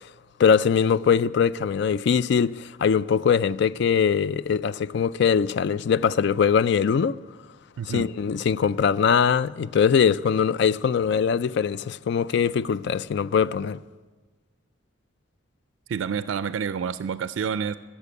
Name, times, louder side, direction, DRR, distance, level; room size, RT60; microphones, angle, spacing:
voice 1, 0.4-7.2 7.9-13.8, left 7 dB, 60° left, 0.3 m, -22 dB
voice 2, 7.8-8.1 15.9-17.8, right 6 dB, 85° right, 0.3 m, -28 dB
13.5 x 7.2 x 9.4 m
head